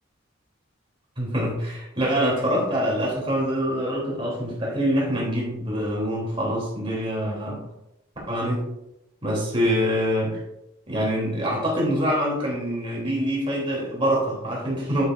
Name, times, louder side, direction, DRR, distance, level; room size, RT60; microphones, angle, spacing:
voice 1, 1.2-7.6 8.3-8.6 9.2-10.3 10.9-15.0, equal, 25° right, -4 dB, 3.1 m, -25 dB
9.0 x 8.0 x 2.6 m, 0.86 s
head